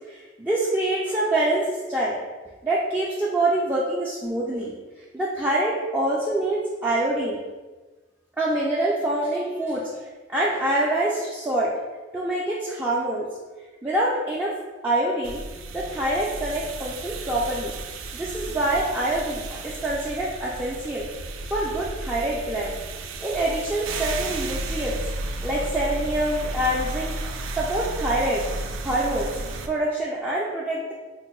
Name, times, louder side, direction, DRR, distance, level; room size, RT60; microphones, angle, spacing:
voice 1, 0.0-2.2 2.6-4.8 5.1-7.4 8.4-11.7 12.1-13.3 13.8-14.5 14.8-15.4 15.7-17.7 18.1-21.0 21.5-22.8 23.2-25.0 25.4-27.2 27.5-28.4 28.8-29.3 29.7-30.9, right 1 dB, 10° right, -7 dB, 0.3 m, -25 dB
sound 1, 15.2-29.7, right 2 dB, 85° right, 0.4 m, -33 dB
4.3 x 2.1 x 3.0 m, 1.3 s
head